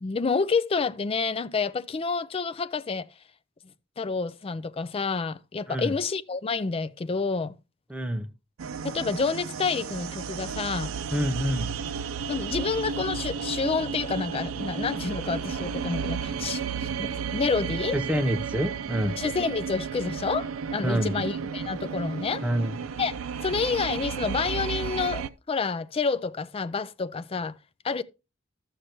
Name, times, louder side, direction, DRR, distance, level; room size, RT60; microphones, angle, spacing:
voice 1, 0.0-3.1 4.0-7.6 8.8-11.0 12.3-18.0 19.2-22.4 23.0-23.2 23.4-27.6 27.8-28.0, left 4 dB, 25° left, 0.4 m, -29 dB
voice 2, 7.9-8.3 11.1-11.7 17.9-19.2 20.8-21.2 22.4-22.8, equal, 5° right, 0.7 m, -27 dB
sound 1, 8.6-25.3, right 6 dB, 80° right, 0.5 m, -33 dB
13.0 x 6.5 x 3.0 m
head